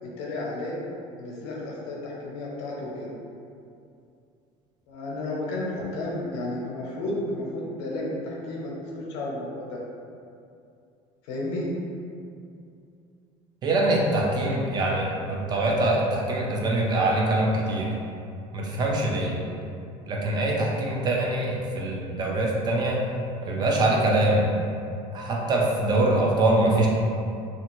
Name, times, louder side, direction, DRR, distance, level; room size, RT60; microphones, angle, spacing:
voice 1, 0.0-0.8 1.2-3.1 4.9-9.8 11.3-11.7, left 2 dB, 90° left, -4 dB, 0.7 m, -32 dB
voice 2, 13.6-17.9 18.5-19.4 20.1-23.0 23.4-24.5 25.1-26.9, right 2 dB, 30° right, -2 dB, 0.5 m, -24 dB
2.7 x 2.5 x 3.0 m, 2.5 s
cardioid pair, 140°, 13 cm